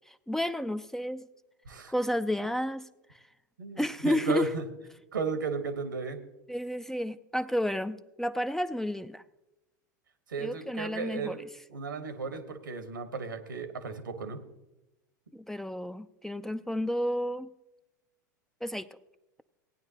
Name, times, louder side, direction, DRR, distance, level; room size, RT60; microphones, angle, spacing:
voice 1, 0.1-1.3 1.9-2.9 3.8-4.5 6.5-9.2 10.4-11.4 15.3-17.5 18.6-18.9, equal, 5° left, 13 dB, 0.4 m, -31 dB
voice 2, 3.6-4.6 5.1-6.2 10.3-11.4 11.7-14.4, right 4 dB, 90° right, 8 dB, 1.4 m, -34 dB
17.5 x 9.5 x 2.9 m, 0.96 s
hypercardioid pair, 95°, 10 cm